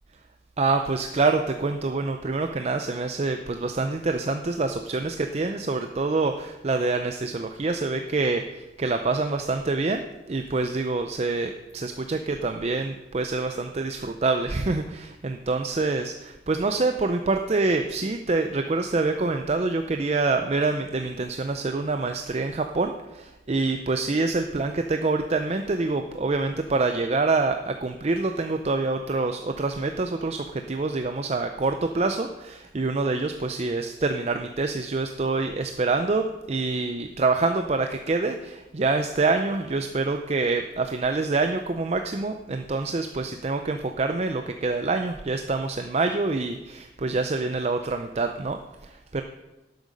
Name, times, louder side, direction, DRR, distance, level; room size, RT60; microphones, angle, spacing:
voice 1, 0.6-48.6 49.1-49.2, right 3 dB, 35° right, 6 dB, 0.5 m, -26 dB
12.0 x 7.9 x 5.3 m, 1.1 s
head